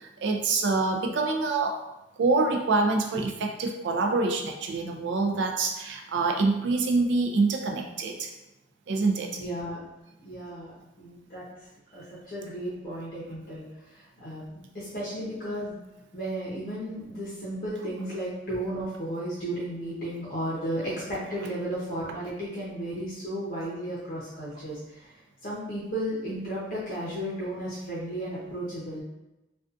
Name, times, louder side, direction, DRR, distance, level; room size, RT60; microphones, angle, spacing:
voice 1, 0.0-1.8 2.2-8.3 8.9-9.4, right 3 dB, 70° right, 2 dB, 0.4 m, -26 dB
voice 2, 9.4-9.8 10.2-11.4 11.9-15.8 16.1-25.1 25.4-29.0, right 1 dB, 45° left, -8 dB, 0.6 m, -34 dB
2.4 x 2.3 x 2.5 m, 0.96 s
head